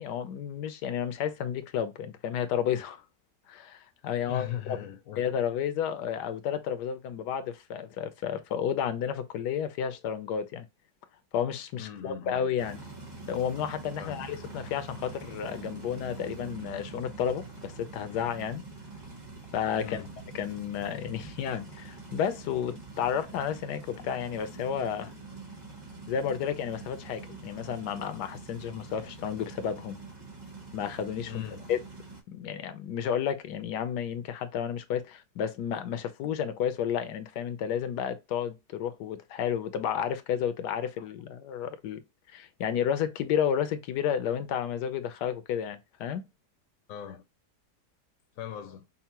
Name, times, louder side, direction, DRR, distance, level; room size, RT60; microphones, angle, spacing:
voice 1, 0.0-3.0 3.5-4.8 5.2-10.7 11.3-12.8 13.3-18.6 19.5-20.0 20.3-25.1 26.1-30.0 30.7-31.4 31.7-31.8 32.3-42.0 42.3-46.2, left 8 dB, 85° left, 1.2 m, -31 dB
voice 2, 4.3-5.3 11.8-12.4 14.0-14.3 19.8-20.1 31.3-31.6 41.0-41.1 46.9-47.2 48.4-48.8, left 10 dB, 70° left, 0.9 m, -39 dB
sound 1, 12.6-32.2, right 3 dB, 20° right, 0.7 m, -45 dB
5.5 x 2.1 x 2.8 m
omnidirectional pair, 1.7 m